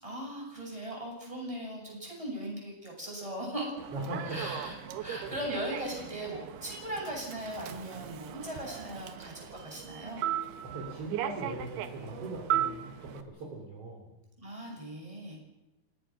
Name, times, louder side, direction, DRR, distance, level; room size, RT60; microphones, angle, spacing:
voice 1, 0.0-3.8 4.3-10.3 14.4-15.4, right 1 dB, 5° right, -1 dB, 7.6 m, -39 dB
Human voice / Subway metro underground, 3.8-13.2, right 11 dB, 80° right, 3.3 m, -37 dB
voice 2, 3.9-4.7 10.6-14.0, right 2 dB, 40° right, 0 dB, 4.2 m, -40 dB
29.5 x 18.0 x 6.3 m, 0.98 s
omnidirectional pair, 4.5 m